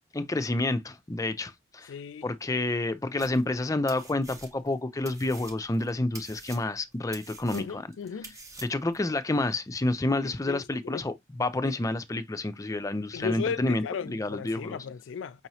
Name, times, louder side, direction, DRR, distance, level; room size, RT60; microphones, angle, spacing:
voice 1, 0.1-1.9 2.2-7.8 8.6-14.8, left 2 dB, 20° left, 0.4 m, -29 dB
voice 2, 1.9-2.3 7.5-8.3 10.2-11.0 11.6-11.7 13.1-15.5, left 6 dB, 90° left, 0.4 m, -36 dB
sound 1, 3.2-3.6 3.9-4.8 5.1-9.0, right 3 dB, 20° right, 0.9 m, -46 dB
5.4 x 3.0 x 2.7 m
head